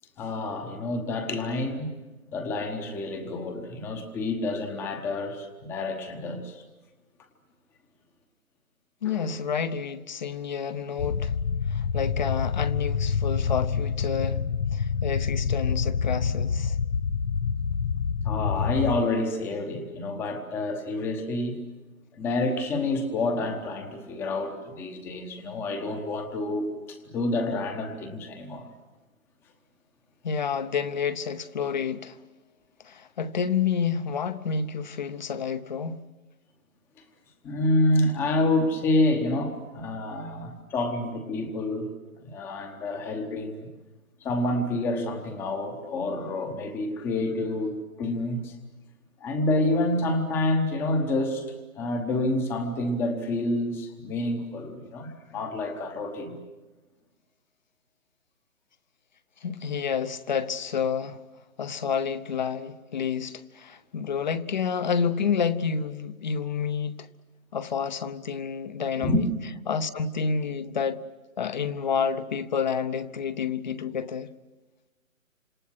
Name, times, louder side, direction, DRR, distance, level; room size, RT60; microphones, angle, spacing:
voice 1, 0.2-1.9 2.3-6.6 9.0-9.3 18.2-21.6 22.1-28.6 37.4-41.9 42.2-43.7 44.2-48.6 49.2-56.4 69.0-69.2, left 2 dB, 5° left, 1.0 m, -28 dB
voice 2, 9.0-11.3 11.7-14.4 14.7-16.8 30.2-32.2 32.8-36.0 59.4-61.2 61.6-67.1 67.5-69.3 69.7-71.0 71.4-74.3, left 6 dB, 35° left, 0.9 m, -29 dB
sound 1, 11.0-19.0, left 6 dB, 75° left, 0.9 m, -27 dB
28.0 x 26.5 x 6.2 m
figure-of-eight pair, 150°, 41 cm